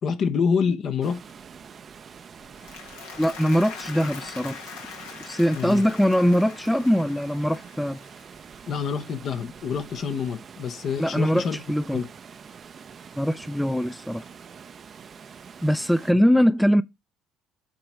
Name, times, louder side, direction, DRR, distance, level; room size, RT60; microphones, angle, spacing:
voice 1, 0.0-1.2 5.5-5.8 8.7-11.6 11.9-12.1, left 6 dB, 55° left, 0.9 m, -27 dB
Water, 1.0-16.1, right 6 dB, 45° right, 0.6 m, -45 dB
Applause, 2.4-8.7, left 6 dB, 80° left, 1.5 m, -42 dB
voice 2, 3.2-4.6 5.2-8.0 11.0-12.0 13.2-14.2 15.6-16.8, equal, 5° left, 0.4 m, -22 dB
7.8 x 3.0 x 6.1 m
hypercardioid pair, 60°, 0 cm